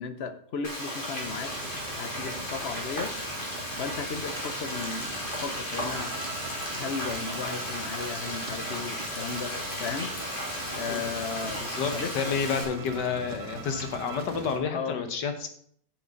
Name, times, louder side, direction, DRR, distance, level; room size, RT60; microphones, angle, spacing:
voice 1, 0.0-1.5 1.9-3.1 3.8-6.1 6.7-9.5 9.8-10.1 10.7-11.6 11.9-12.4 14.7-15.0, left 5 dB, 50° left, 10 dB, 0.8 m, -35 dB
Frying (food), 0.6-12.6, left 1 dB, 30° left, 2.7 m, -35 dB
sound 1, 1.2-14.6, right 3 dB, 80° right, 2.5 m, -43 dB
sound 2, 5.9-14.3, right 6 dB, 60° right, 0.5 m, -45 dB
voice 2, 11.6-15.5, left 6 dB, 80° left, 8 dB, 1.7 m, -30 dB
7.7 x 7.4 x 5.1 m, 0.62 s
omnidirectional pair, 1.8 m